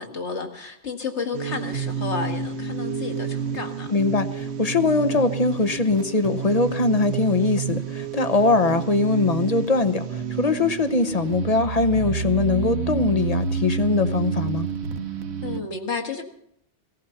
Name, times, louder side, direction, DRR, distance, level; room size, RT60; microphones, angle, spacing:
voice 1, 0.0-3.9 15.4-16.2, left 4 dB, 85° left, 5 dB, 2.1 m, -31 dB
sound 1, 1.3-15.6, right 6 dB, 70° right, 1.2 m, -29 dB
voice 2, 3.9-14.7, left 3 dB, 35° left, 10 dB, 0.9 m, -22 dB
17.5 x 14.5 x 5.7 m, 0.71 s
omnidirectional pair, 1.1 m